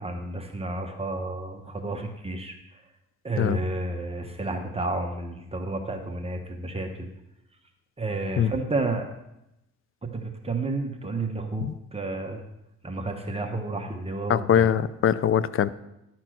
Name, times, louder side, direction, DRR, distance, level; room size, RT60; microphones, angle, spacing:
voice 1, 0.0-2.8 3.2-7.1 8.0-9.1 10.0-12.4 12.8-14.7, right 2 dB, 20° right, 3 dB, 1.1 m, -31 dB
voice 2, 14.3-15.7, left 9 dB, 45° left, 17 dB, 0.5 m, -22 dB
11.0 x 4.4 x 6.1 m, 0.87 s
cardioid pair, 90°, 30 cm